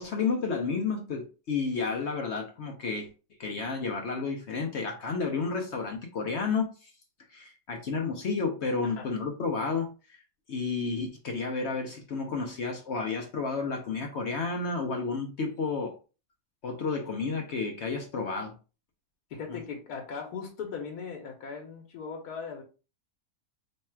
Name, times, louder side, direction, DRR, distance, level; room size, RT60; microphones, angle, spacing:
voice 1, 0.0-3.1 3.4-6.9 7.3-10.2 10.5-16.0 16.6-18.5, left 4 dB, 60° left, 0.8 m, -31 dB
voice 2, 19.3-22.6, left 5 dB, 85° left, 1.3 m, -38 dB
3.2 x 2.3 x 4.3 m
omnidirectional pair, 1.6 m